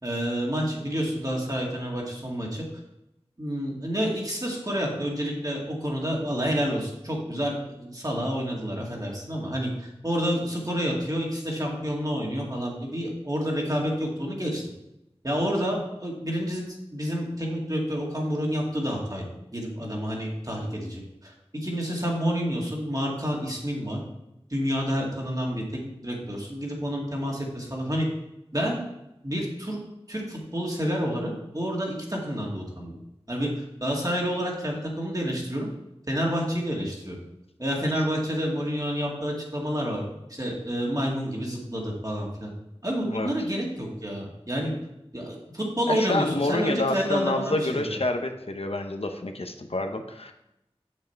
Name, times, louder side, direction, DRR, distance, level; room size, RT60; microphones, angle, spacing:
voice 1, 0.0-2.6 3.4-14.6 15.2-16.6 16.9-24.0 24.5-28.1 28.5-28.8 29.2-29.8 30.1-33.0 33.3-35.7 36.1-37.2 37.6-40.0 40.3-42.5 42.8-44.7 45.1-48.0, equal, 35° right, -2 dB, 2.3 m, -29 dB
voice 2, 45.9-50.3, left 2 dB, 70° left, 6 dB, 0.8 m, -28 dB
7.5 x 7.4 x 4.6 m, 0.87 s
wide cardioid pair, 40°, 11 cm